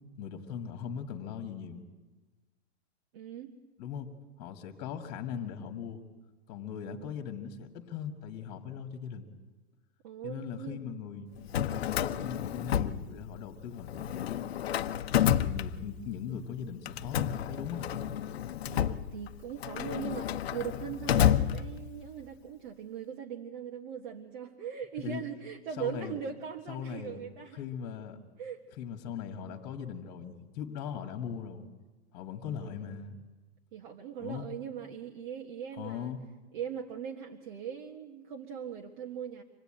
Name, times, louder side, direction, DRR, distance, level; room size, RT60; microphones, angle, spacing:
voice 1, 0.2-1.8 3.8-4.1 4.4-6.0 6.5-9.3 10.2-11.3 11.8-14.4 15.4-17.9 25.0-25.3 25.8-26.2 26.7-27.2 27.5-28.2 28.8-31.7 32.1-33.2 34.2-34.5 35.8-36.2, left 8 dB, 30° left, 5 dB, 2.0 m, -39 dB
voice 2, 3.1-3.6 6.9-7.1 10.0-10.8 18.7-27.7 28.4-28.6 32.5-33.1 33.7-36.1 36.5-39.4, right 8 dB, 45° right, 1 dB, 1.7 m, -40 dB
Drawer open or close, 11.4-13.5 13.8-16.2 16.9-22.1, left 10 dB, 70° left, 1.0 m, -30 dB
25.5 x 19.0 x 9.0 m, 1.2 s
hypercardioid pair, 165°, 32 cm